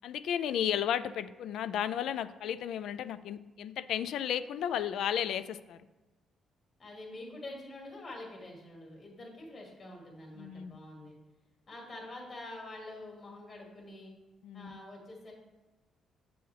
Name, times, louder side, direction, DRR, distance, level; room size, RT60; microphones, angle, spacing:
voice 1, 0.0-5.8 10.4-10.8 14.4-14.8, left 9 dB, 75° left, 14 dB, 0.3 m, -33 dB
voice 2, 6.8-11.1 11.7-14.1 14.5-15.3, left 2 dB, 45° left, -1 dB, 2.5 m, -46 dB
7.6 x 6.8 x 3.3 m, 1.1 s
cardioid pair, 90°, 0 cm